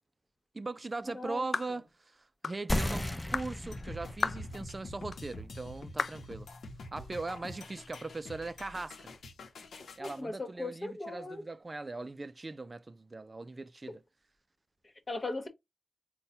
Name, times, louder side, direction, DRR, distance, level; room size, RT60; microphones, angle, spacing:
voice 1, 0.5-6.5 6.9-9.1 10.0-14.0, right 3 dB, 40° right, 0.3 m, -40 dB
sound 1, 1.5-1.8 2.4-2.6 3.3-3.5 4.2-4.5 5.1-5.2 6.0-6.2, left 5 dB, 70° left, 0.3 m, -33 dB
sound 2, 2.7-7.8, left 1 dB, 20° left, 0.5 m, -38 dB
sound 3, 3.7-10.2, left 2 dB, 90° left, 0.7 m, -47 dB
voice 2, 10.0-11.4 15.1-15.5, left 2 dB, 45° left, 1.2 m, -38 dB
4.0 x 2.2 x 3.9 m
cardioid pair, 45°, 0 cm